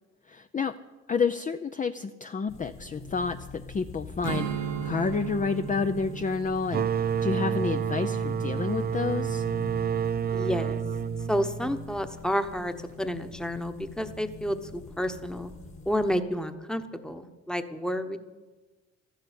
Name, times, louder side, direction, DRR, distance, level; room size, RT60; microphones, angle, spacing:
voice 1, 0.3-0.7 1.1-9.4, left 5 dB, 25° left, 9 dB, 0.5 m, -30 dB
sound 1, 2.5-16.2, left 3 dB, 45° left, 2.4 m, -44 dB
Strum, 4.2-9.6, right 8 dB, 80° right, 1.4 m, -37 dB
sound 2, 6.7-12.1, right 7 dB, 30° right, 0.4 m, -29 dB
voice 2, 10.3-10.8 11.3-15.5 15.9-18.2, equal, ahead, 8 dB, 1.1 m, -30 dB
13.0 x 11.5 x 8.3 m, 1.3 s
cardioid pair, 90°, 30 cm